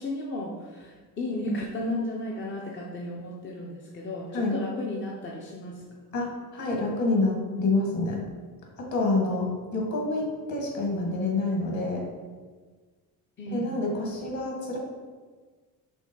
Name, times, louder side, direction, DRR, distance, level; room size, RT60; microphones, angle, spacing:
voice 1, 0.0-5.8 6.1-6.2 13.4-13.7, left 1 dB, 30° left, -2 dB, 0.5 m, -34 dB
voice 2, 6.1-8.2 8.9-9.5 9.7-12.0 13.5-14.8, left 2 dB, 50° left, 0 dB, 1.6 m, -27 dB
5.3 x 3.8 x 5.2 m, 1.4 s
cardioid pair, 165°, 38 cm